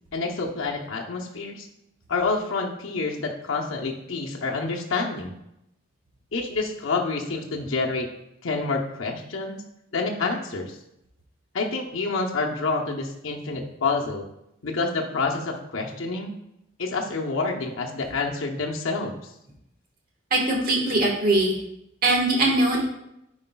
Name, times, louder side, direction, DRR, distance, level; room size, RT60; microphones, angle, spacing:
voice 1, 0.1-1.7 2.1-5.3 6.3-8.1 8.4-9.6 9.9-10.8 11.5-14.3 14.6-16.3 16.8-19.2, left 3 dB, 75° left, 0 dB, 0.8 m, -28 dB
voice 2, 20.3-21.6 22.0-22.9, right 2 dB, 45° right, -1 dB, 1.4 m, -21 dB
9.5 x 4.8 x 2.3 m, 0.81 s
head